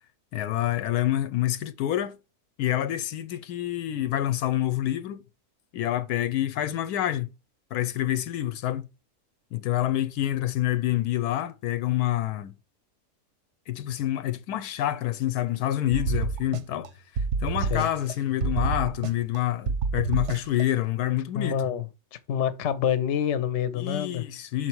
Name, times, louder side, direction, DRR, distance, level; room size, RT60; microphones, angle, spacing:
voice 1, 0.3-2.2 2.6-5.2 5.7-7.3 7.7-8.9 9.5-12.5 13.7-21.6 23.7-24.7, left 13 dB, 85° left, 1.1 m, -27 dB
sound 1, 15.9-16.9 17.2-18.1 18.4-19.4 19.7-20.6, right 5 dB, 65° right, 0.8 m, -28 dB
voice 2, 21.3-21.8 22.3-24.2, left 9 dB, 55° left, 0.9 m, -26 dB
6.3 x 4.5 x 4.5 m
omnidirectional pair, 1.6 m